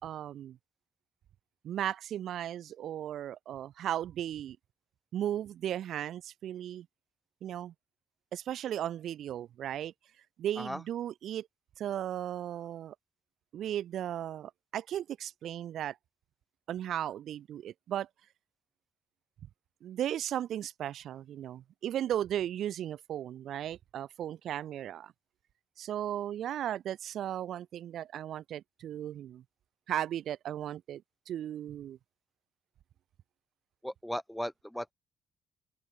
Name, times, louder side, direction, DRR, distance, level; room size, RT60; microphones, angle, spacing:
voice 1, 0.0-0.6 1.6-4.6 5.1-6.9 7.4-7.7 8.3-9.9 10.4-11.5 11.8-12.9 13.5-16.0 16.7-18.1 19.8-25.1 25.8-29.4 29.9-32.0, right 11 dB, 70° right, 2.4 m, -36 dB
voice 2, 33.8-34.9, equal, ahead, 3.8 m, -37 dB
open air
cardioid pair, 90°, 0 cm